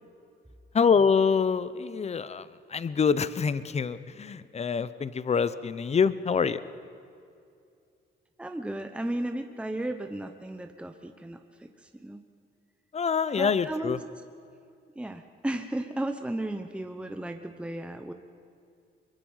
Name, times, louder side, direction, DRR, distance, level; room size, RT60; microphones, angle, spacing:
voice 1, 0.7-6.6 12.9-14.0, left 6 dB, 35° left, 15 dB, 0.8 m, -25 dB
voice 2, 8.4-12.2 13.4-14.0 15.0-18.1, right 1 dB, 5° right, 6 dB, 1.0 m, -34 dB
23.0 x 22.5 x 5.7 m, 2.4 s
cardioid pair, 90°, 20 cm